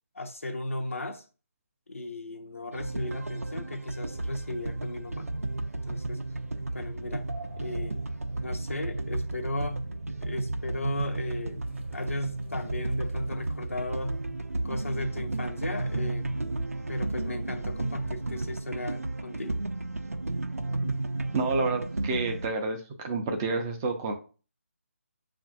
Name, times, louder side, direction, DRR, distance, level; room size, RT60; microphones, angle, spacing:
voice 1, 0.1-1.2 1.9-5.3 5.8-6.2 6.7-7.3 7.6-8.0 8.4-9.8 10.2-11.6 11.9-14.2 14.6-16.3 16.9-19.6, left 1 dB, 70° left, 0.7 m, -36 dB
sound 1, 2.7-22.5, right 2 dB, 80° right, 0.4 m, -34 dB
sound 2, 4.1-18.6, right 2 dB, 55° right, 0.8 m, -40 dB
voice 2, 21.3-24.1, right 3 dB, 15° right, 0.4 m, -29 dB
7.0 x 2.5 x 2.4 m
figure-of-eight pair, 150°, 8 cm